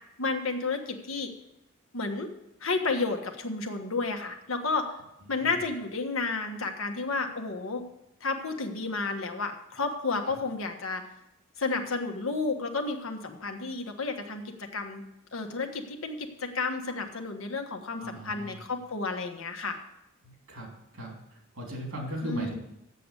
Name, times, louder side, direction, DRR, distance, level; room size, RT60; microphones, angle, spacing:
voice 1, 0.2-1.3 1.9-2.3 2.6-4.9 5.3-7.8 8.2-11.0 11.6-15.0 15.3-19.8 22.2-22.5, left 3 dB, 85° left, 5 dB, 1.3 m, -31 dB
voice 2, 18.0-18.6 20.2-21.2 21.5-22.6, equal, 85° right, -1 dB, 3.3 m, -38 dB
7.7 x 6.7 x 8.3 m, 0.85 s
head